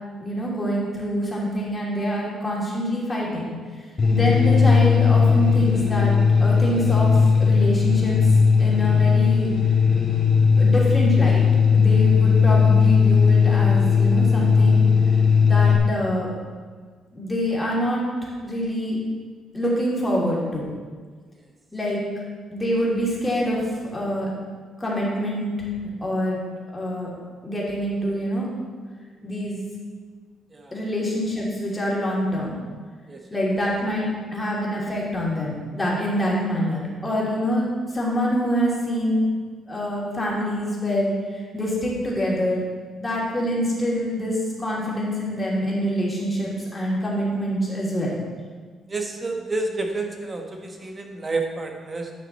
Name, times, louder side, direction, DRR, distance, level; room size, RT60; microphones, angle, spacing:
voice 1, 0.2-3.5 4.1-6.1 6.4-8.1 8.6-9.5 10.5-11.4 11.7-14.9 15.4-16.3 17.1-18.0 18.4-19.0 19.5-20.7 21.7-22.0 22.5-23.6 23.9-24.3 24.8-25.5 26.0-26.5 26.7-27.1 27.4-28.5 29.2-29.6 30.7-32.6 33.3-37.7 37.9-39.4 39.7-42.6 43.0-48.2, equal, 15° left, -5 dB, 2.9 m, -25 dB
sound 1, 4.0-15.8, left 6 dB, 35° left, 1.9 m, -17 dB
voice 2, 33.1-33.4 48.9-52.1, right 3 dB, 30° right, 3 dB, 1.2 m, -30 dB
9.7 x 6.3 x 4.2 m, 1.5 s
cardioid pair, 90°, 0 cm